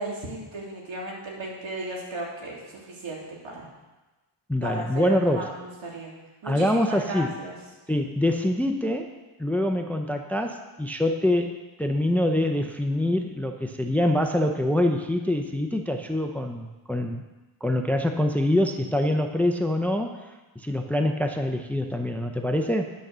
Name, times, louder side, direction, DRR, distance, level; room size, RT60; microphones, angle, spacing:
voice 1, 0.0-3.6 4.6-6.1 6.4-6.7 7.0-7.6, right 1 dB, 70° right, -3 dB, 3.2 m, -35 dB
voice 2, 4.5-5.5 6.4-7.3 7.9-9.1 9.4-11.5 11.8-17.2 17.6-20.2 20.6-22.9, left 1 dB, 5° left, 5 dB, 0.6 m, -25 dB
10.0 x 6.4 x 6.7 m, 1.1 s
cardioid pair, 100°, 48 cm